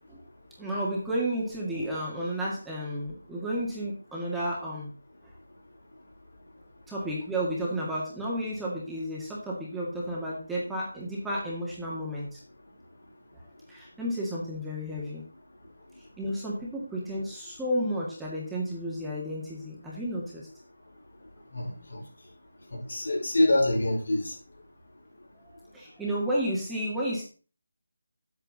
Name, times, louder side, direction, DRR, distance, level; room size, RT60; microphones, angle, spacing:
voice 1, 0.6-4.9 5.2-5.3 6.9-12.4 13.3-15.2 16.2-20.5 25.4-27.2, equal, 5° right, -6 dB, 1.9 m, -32 dB
voice 2, 21.5-22.0 22.7-24.3, left 1 dB, 65° left, -2 dB, 5.0 m, -26 dB
9.0 x 8.5 x 4.0 m, 0.37 s
figure-of-eight pair, 155°, 0 cm